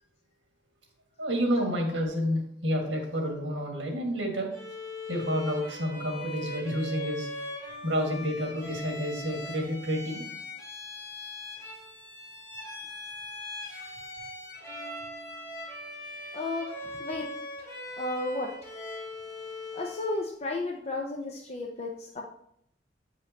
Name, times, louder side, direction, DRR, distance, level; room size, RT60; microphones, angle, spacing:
voice 1, 1.2-4.5 5.1-7.3 7.8-10.2 13.6-13.9, equal, 80° right, 1 dB, 1.7 m, -30 dB
Bowed string instrument, 4.5-20.3, left 1 dB, 15° left, 3.0 m, -40 dB
voice 2, 16.3-17.3 18.0-18.5 19.7-22.2, left 2 dB, 35° left, 1 dB, 0.7 m, -33 dB
8.8 x 5.1 x 2.8 m, 0.71 s
head